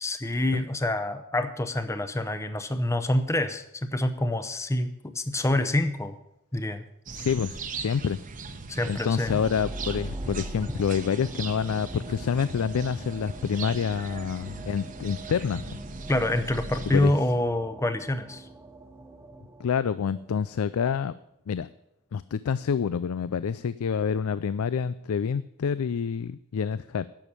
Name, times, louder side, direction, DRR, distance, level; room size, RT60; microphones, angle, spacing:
voice 1, 0.0-6.2 6.5-6.9 8.7-9.4 16.1-18.5, left 1 dB, 15° left, 10 dB, 0.7 m, -27 dB
voice 2, 7.1-8.2 8.9-15.8 16.9-17.1 19.6-21.1 21.5-21.7 22.1-27.1, left 7 dB, 90° left, 16 dB, 0.4 m, -27 dB
sound 1, 7.1-17.1, right 3 dB, 40° right, 1.0 m, -38 dB
sound 2, 8.7-21.3, right 3 dB, 10° right, 1.2 m, -46 dB
10.5 x 7.0 x 8.8 m, 0.82 s
head